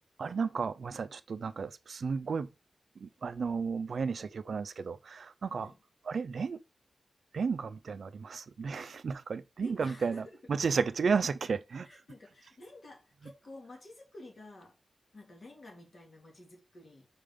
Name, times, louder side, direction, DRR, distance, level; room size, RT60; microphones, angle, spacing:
voice 1, 0.2-2.5 3.0-5.7 6.1-6.6 7.3-11.9, right 5 dB, 65° right, 0.5 m, -33 dB
voice 2, 9.6-10.2 11.8-14.8 15.1-17.1, left 2 dB, 45° left, 2.2 m, -51 dB
5.1 x 5.0 x 3.7 m
wide cardioid pair, 155°, 0 cm